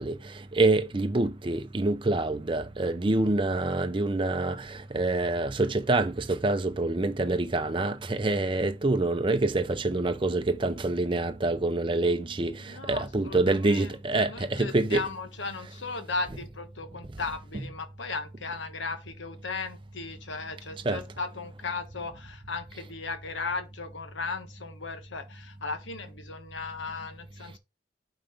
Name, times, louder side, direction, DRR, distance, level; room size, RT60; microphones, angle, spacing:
voice 1, 0.0-15.0 20.8-21.0, right 2 dB, 25° right, 0.5 m, -26 dB
voice 2, 12.6-27.6, left 4 dB, 90° left, 1.3 m, -36 dB
5.8 x 4.9 x 4.8 m
head